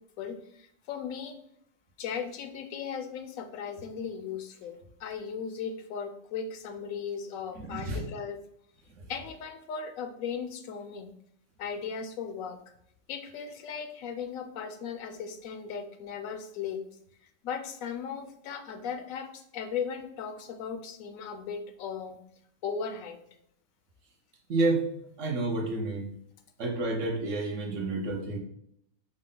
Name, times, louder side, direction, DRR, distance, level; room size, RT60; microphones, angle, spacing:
voice 1, 0.2-1.4 2.0-8.4 9.1-11.1 11.6-12.6 13.1-16.8 17.4-22.2 22.6-23.2, left 6 dB, 80° left, 7 dB, 1.0 m, -37 dB
voice 2, 7.6-8.0 24.5-24.8 25.2-26.1 26.6-28.4, right 2 dB, 65° right, 1 dB, 1.2 m, -29 dB
5.2 x 2.1 x 3.8 m, 0.71 s
omnidirectional pair, 1.4 m